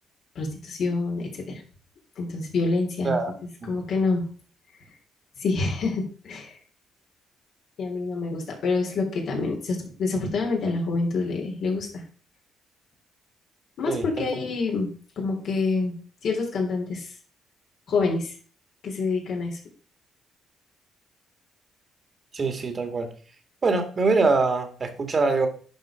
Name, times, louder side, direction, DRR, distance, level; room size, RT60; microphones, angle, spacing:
voice 1, 0.4-1.6 2.2-3.2 3.7-4.2 5.4-6.5 7.8-12.0 13.8-14.9 15.2-15.9 16.2-17.1 17.9-18.3 18.8-19.6, left 3 dB, 65° left, 0 dB, 3.5 m, -27 dB
voice 2, 13.9-14.3 22.3-23.1 23.6-25.5, right 3 dB, 40° right, 6 dB, 2.2 m, -24 dB
11.0 x 5.0 x 5.0 m, 0.42 s
supercardioid pair, 65°, 0 cm